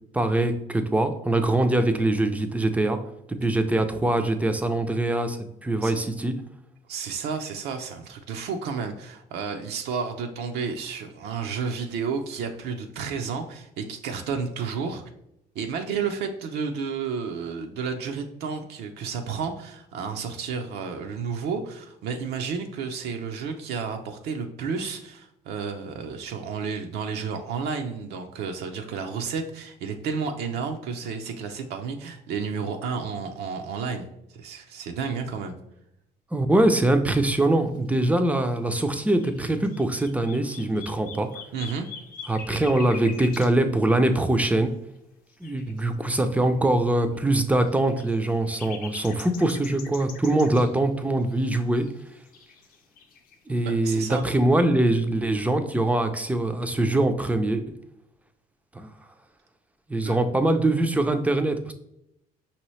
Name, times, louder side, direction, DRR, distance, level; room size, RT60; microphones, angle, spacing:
voice 1, 0.1-3.0 3.4-5.4 5.6-6.4 36.3-41.3 42.3-44.7 45.4-51.9 53.5-57.6 58.7-58.9 59.9-61.7, right 1 dB, 10° right, 7 dB, 0.4 m, -23 dB
voice 2, 6.9-15.0 15.6-35.5 41.5-41.9 53.6-54.2 60.0-60.2, right 5 dB, 75° right, 4 dB, 0.5 m, -31 dB
sound 1, 38.7-38.8 39.0-43.5 45.4-45.8 46.6-46.7 47.1-47.2 47.6-50.7 51.2-52.0 52.3-53.3, left 5 dB, 55° left, 0.6 m, -43 dB
5.3 x 2.8 x 3.1 m, 0.82 s
cardioid pair, 110°, 17 cm